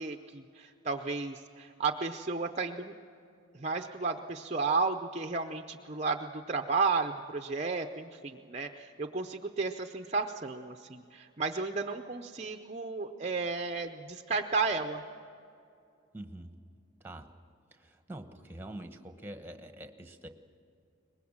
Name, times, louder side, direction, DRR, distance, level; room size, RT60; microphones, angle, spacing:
voice 1, 0.0-2.9 3.5-15.0, right 4 dB, 30° right, 6 dB, 0.6 m, -33 dB
voice 2, 16.1-16.5 17.0-17.3 17.7-20.3, right 1 dB, 10° right, 7 dB, 1.1 m, -45 dB
23.5 x 20.5 x 7.3 m, 2.5 s
head